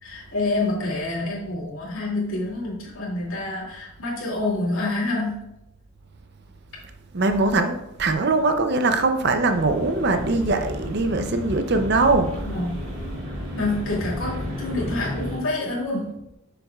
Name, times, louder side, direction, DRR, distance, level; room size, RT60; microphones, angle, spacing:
voice 1, 0.0-5.4 12.4-12.9 13.5-16.2, left 2 dB, 65° left, -5 dB, 2.6 m, -27 dB
voice 2, 7.1-12.5, right 3 dB, 50° right, 7 dB, 0.6 m, -21 dB
sound 1, 9.5-15.4, left 1 dB, 85° right, 2.2 m, -32 dB
7.1 x 6.9 x 2.4 m, 0.86 s
head